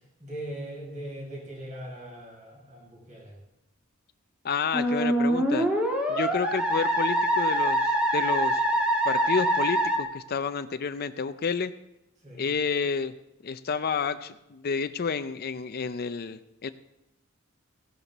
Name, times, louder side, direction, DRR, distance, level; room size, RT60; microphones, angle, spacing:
voice 1, 0.2-3.3 12.2-12.4, right 1 dB, 35° right, -2 dB, 5.7 m, -40 dB
voice 2, 4.4-5.7 6.1-8.6 9.0-11.7 12.4-13.1 13.4-16.7, left 5 dB, 45° left, 11 dB, 0.5 m, -30 dB
Musical instrument, 4.7-10.0, right 1 dB, 5° right, 2.1 m, -24 dB
16.5 x 11.0 x 4.0 m, 0.92 s
head